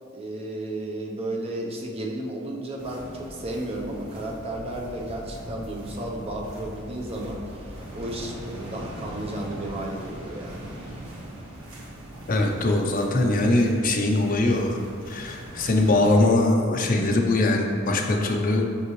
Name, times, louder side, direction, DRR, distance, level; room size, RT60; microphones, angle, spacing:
voice 1, 0.1-10.7, right 1 dB, 30° right, 0 dB, 0.7 m, -33 dB
sound 1, 2.8-16.2, right 1 dB, 80° right, 1.4 m, -41 dB
voice 2, 12.3-14.8 15.1-18.6, left 2 dB, 40° left, 2 dB, 0.6 m, -22 dB
6.0 x 5.5 x 3.1 m, 2.3 s
head